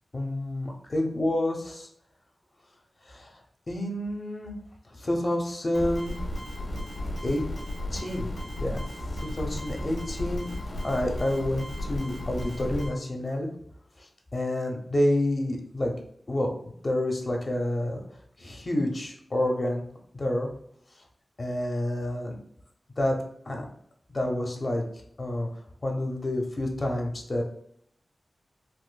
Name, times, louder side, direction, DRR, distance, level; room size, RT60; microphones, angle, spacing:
voice 1, 0.1-1.9 3.1-3.3 3.7-4.5 4.9-6.2 7.2-7.5 7.9-8.3 8.6-8.8 9.2-13.5 14.0-15.9 16.3-18.0 18.4-19.8 20.1-20.5 21.4-22.4 23.0-23.2 23.4-23.6 24.1-24.8 25.2-25.5 25.8-27.4, left 1 dB, 50° left, 1 dB, 0.8 m, -29 dB
sound 1, 5.7-12.9, left 1 dB, 70° left, 1.4 m, -34 dB
4.3 x 2.5 x 2.2 m, 0.68 s
cardioid pair, 55°, 0 cm